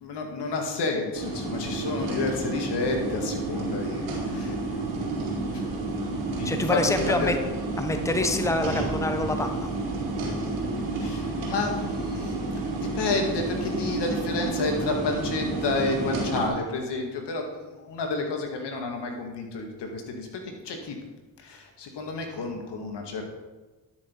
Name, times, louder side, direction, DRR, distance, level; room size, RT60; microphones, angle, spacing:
voice 1, 0.0-4.5 6.0-7.3 11.0-12.4 12.8-20.3 20.6-21.0 21.4-23.2, left 3 dB, 65° left, 3 dB, 2.2 m, -30 dB
sound 1, 1.1-16.5, right 2 dB, 75° right, 3.3 m, -30 dB
voice 2, 6.4-7.4 7.8-9.7, left 2 dB, 5° left, 7 dB, 1.0 m, -26 dB
12.0 x 6.5 x 4.7 m, 1.2 s
hypercardioid pair, 55°, 44 cm